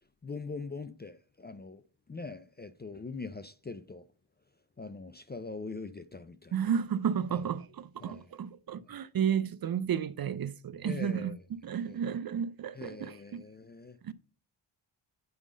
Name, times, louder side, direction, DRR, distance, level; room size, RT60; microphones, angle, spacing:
voice 1, 0.2-4.0 4.8-6.7 7.3-7.4 8.0-8.3 10.8-11.4 11.9-12.0 12.7-14.1, left 4 dB, 25° left, 0.3 m, -42 dB
voice 2, 6.5-13.4 14.0-14.1, right 8 dB, 50° right, 0.5 m, -32 dB
9.5 x 3.6 x 5.0 m
wide cardioid pair, 90°, 49 cm